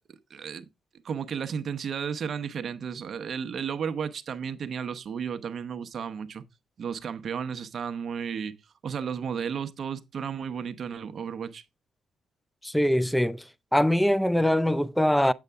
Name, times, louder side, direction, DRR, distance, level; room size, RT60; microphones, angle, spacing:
voice 1, 0.3-0.6 1.0-6.4 6.8-8.6 8.8-11.6, right 7 dB, 55° right, 0.8 m, -33 dB
voice 2, 12.6-13.4 13.7-15.3, equal, 5° left, 0.4 m, -23 dB
8.1 x 6.6 x 3.5 m
cardioid pair, 90°, 0 cm